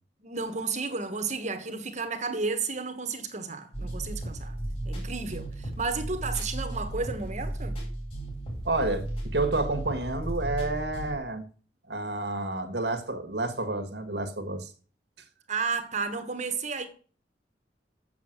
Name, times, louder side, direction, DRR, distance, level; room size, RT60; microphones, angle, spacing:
voice 1, 0.2-4.5 4.9-7.8 15.5-16.9, right 4 dB, 40° right, 1.3 m, -32 dB
sound 1, 3.7-11.2, right 1 dB, 35° left, 4.5 m, -35 dB
voice 2, 8.6-11.4 11.9-14.7, right 2 dB, 70° right, 1.6 m, -30 dB
7.4 x 7.1 x 7.8 m
head